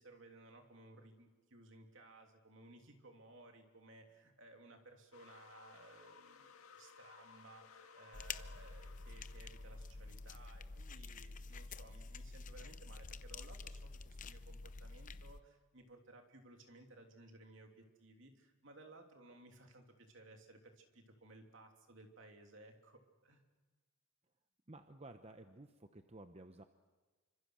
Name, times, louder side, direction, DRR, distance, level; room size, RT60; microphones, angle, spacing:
voice 1, 0.0-23.4, right 2 dB, 60° right, 4 dB, 3.1 m, -59 dB
sound 1, 5.1-10.4, left 5 dB, 85° left, 2.0 m, -61 dB
sound 2, 8.1-15.4, left 4 dB, 40° left, 0.7 m, -49 dB
voice 2, 24.7-26.6, right 2 dB, 30° right, 7 dB, 0.9 m, -54 dB
27.5 x 25.5 x 6.4 m, 1.3 s
head